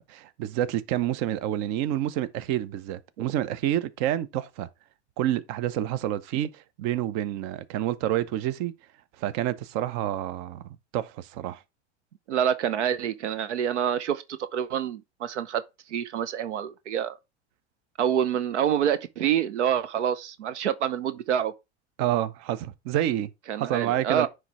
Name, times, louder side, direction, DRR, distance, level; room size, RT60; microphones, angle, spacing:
voice 1, 0.0-4.7 5.2-8.7 9.2-10.6 10.9-11.6 22.0-23.3 23.6-24.3, right 12 dB, 50° right, 0.8 m, -28 dB
voice 2, 12.3-15.6 15.9-17.2 18.0-21.5 23.5-24.3, right 9 dB, 85° right, 0.7 m, -27 dB
9.6 x 3.3 x 4.7 m
hypercardioid pair, 100°, 34 cm